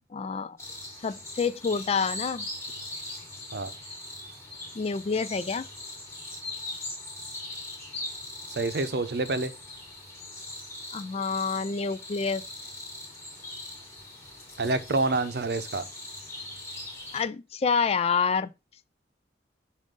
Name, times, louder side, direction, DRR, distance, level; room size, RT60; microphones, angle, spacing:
voice 1, 0.1-0.6 1.0-2.5 4.7-5.6 10.9-12.4 17.1-18.5, left 5 dB, 35° left, 0.3 m, -27 dB
sound 1, 0.6-17.2, left 2 dB, 15° left, 3.0 m, -41 dB
voice 2, 8.5-9.5 14.6-15.9, right 3 dB, 65° right, 0.7 m, -27 dB
7.2 x 2.5 x 5.2 m
head